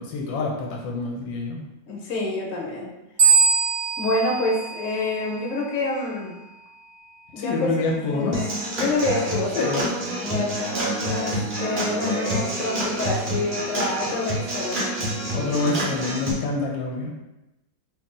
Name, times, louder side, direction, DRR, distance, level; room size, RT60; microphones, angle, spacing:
voice 1, 0.0-1.7 7.4-8.4 9.6-9.9 15.3-17.2, left 3 dB, 80° left, -1 dB, 1.3 m, -26 dB
voice 2, 1.9-2.9 4.0-6.3 7.3-7.7 8.1-9.9 10.2-11.3 11.6-14.8, left 2 dB, 55° left, -2 dB, 1.0 m, -27 dB
sound 1, 3.2-5.7, right 5 dB, 70° right, 1.0 m, -22 dB
Human voice / Acoustic guitar / Drum, 8.3-16.3, right 1 dB, 90° right, 0.4 m, -28 dB
2.9 x 2.8 x 3.7 m, 0.97 s
omnidirectional pair, 2.1 m